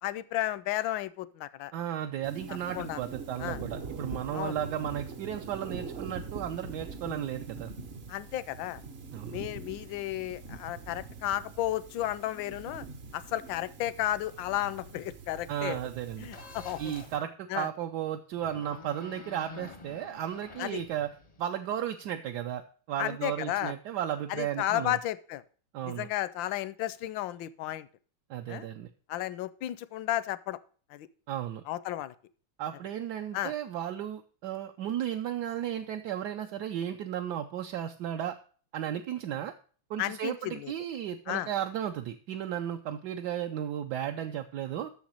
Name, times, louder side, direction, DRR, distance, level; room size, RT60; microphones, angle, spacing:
voice 1, 0.0-1.7 2.8-3.0 3.4-3.6 4.3-4.6 8.1-8.8 9.3-12.8 13.1-15.8 16.2-16.9 17.5-17.7 20.6-20.8 23.0-23.7 24.3-25.4 25.8-27.9 28.5-28.7 29.1-30.6 30.9-31.1 31.7-32.1 33.3-33.5 40.0-40.7 41.3-41.5, left 14 dB, 75° left, 17 dB, 1.2 m, -33 dB
voice 2, 1.7-7.7 9.1-9.4 15.5-16.3 16.8-21.1 21.4-22.6 22.9-25.0 25.7-26.1 28.3-28.9 31.3-31.6 32.6-38.4 38.7-39.5 39.9-44.9, right 10 dB, 70° right, 5 dB, 1.0 m, -34 dB
sound 1, 2.2-17.2, right 4 dB, 50° right, 0.7 m, -43 dB
sound 2, 16.3-17.2 18.3-21.4, left 4 dB, 45° left, 0.5 m, -48 dB
7.2 x 6.7 x 6.3 m, 0.43 s
omnidirectional pair, 2.2 m